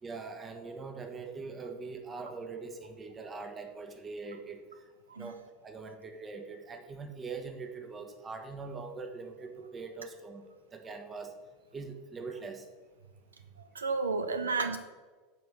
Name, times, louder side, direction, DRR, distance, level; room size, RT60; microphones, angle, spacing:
voice 1, 0.0-4.6 5.2-10.4 10.7-11.3 11.7-12.6, right 4 dB, 25° right, 5 dB, 1.4 m, -42 dB
voice 2, 13.7-14.8, right 4 dB, 90° right, 9 dB, 0.6 m, -31 dB
9.1 x 4.6 x 6.9 m, 1.3 s
hypercardioid pair, 85°, 0 cm